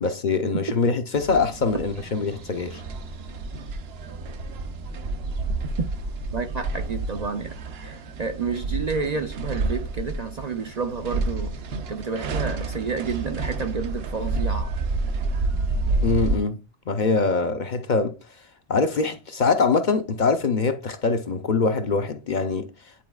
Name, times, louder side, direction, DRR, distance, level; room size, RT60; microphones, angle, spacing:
voice 1, 0.0-2.8 16.0-16.6 16.9-18.1 18.7-22.7, left 4 dB, 50° left, 0.7 m, -23 dB
sound 1, 1.1-16.4, right 3 dB, 70° right, 0.9 m, -29 dB
voice 2, 6.3-7.5 7.8-11.5 11.9-14.8, right 5 dB, 50° right, 0.6 m, -30 dB
10.0 x 4.1 x 2.3 m
omnidirectional pair, 1.1 m